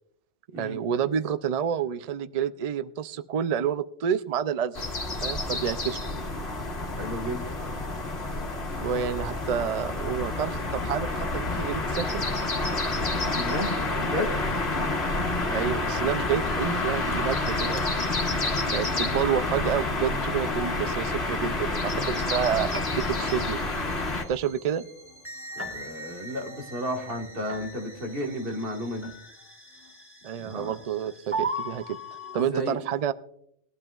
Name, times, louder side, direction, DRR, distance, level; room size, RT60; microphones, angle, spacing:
voice 1, 0.6-4.8 5.2-6.0 8.8-12.3 15.5-17.8 18.7-22.7 23.0-23.6 24.3-24.8 30.2-32.0 32.3-33.1, right 8 dB, 70° right, 13 dB, 0.3 m, -29 dB
sound 1, 4.7-24.2, left 2 dB, 60° left, 1.8 m, -29 dB
voice 2, 6.9-7.4 13.3-14.4 25.6-29.1 30.4-30.8 32.4-32.8, equal, 50° right, 3 dB, 1.8 m, -33 dB
sound 2, 16.6-32.4, right 1 dB, 10° right, 1.1 m, -41 dB
20.5 x 12.0 x 2.4 m, 0.71 s
omnidirectional pair, 1.2 m